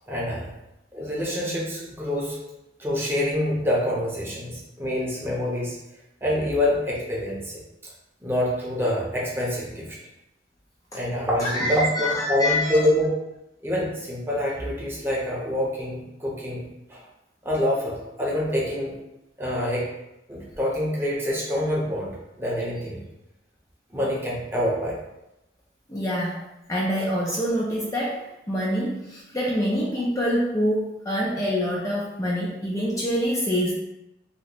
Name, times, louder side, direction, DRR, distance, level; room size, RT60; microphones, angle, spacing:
voice 1, 0.1-0.5 0.9-2.4 2.8-5.8 6.2-7.6 8.2-10.0 10.9-13.1 13.6-16.6 16.9-17.0 17.4-19.0 19.4-19.9 20.3-22.1 22.4-23.0 23.9-25.0, left 1 dB, 15° right, -5 dB, 0.7 m, -26 dB
voice 2, 11.4-12.8 25.9-26.4 26.7-33.7, equal, 20° left, -5 dB, 0.4 m, -26 dB
2.9 x 2.1 x 4.0 m, 0.90 s
head